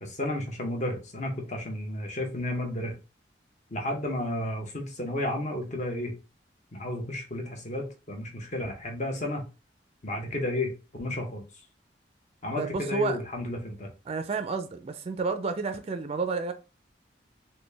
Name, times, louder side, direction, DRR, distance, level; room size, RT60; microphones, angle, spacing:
voice 1, 0.0-3.0 3.7-6.1 6.7-9.5 10.0-11.4 12.4-13.9, left 1 dB, 40° left, 0.9 m, -32 dB
voice 2, 12.6-13.2 14.1-16.5, right 4 dB, 35° right, 0.4 m, -30 dB
4.0 x 2.2 x 3.3 m
head